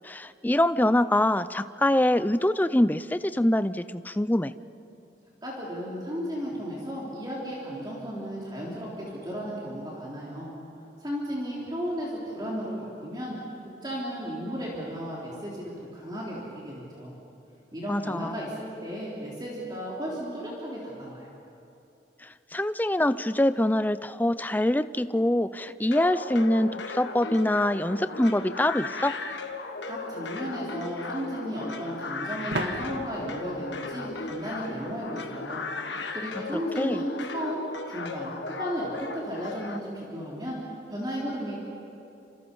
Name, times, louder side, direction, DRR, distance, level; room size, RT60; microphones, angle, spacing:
voice 1, 0.0-4.5 17.9-18.4 22.2-29.2 36.8-37.0, left 1 dB, 10° left, 13 dB, 0.5 m, -24 dB
voice 2, 5.4-10.5 11.0-13.4 13.8-17.1 17.7-21.3 29.8-35.6 36.1-40.6 40.9-41.6, equal, 25° right, -5 dB, 3.8 m, -34 dB
sound 1, 25.9-39.8, left 3 dB, 85° left, 1.6 m, -36 dB
sound 2, 29.5-29.6 32.5-35.1, right 2 dB, 90° right, 1.8 m, -37 dB
28.5 x 27.5 x 5.5 m, 2.7 s
head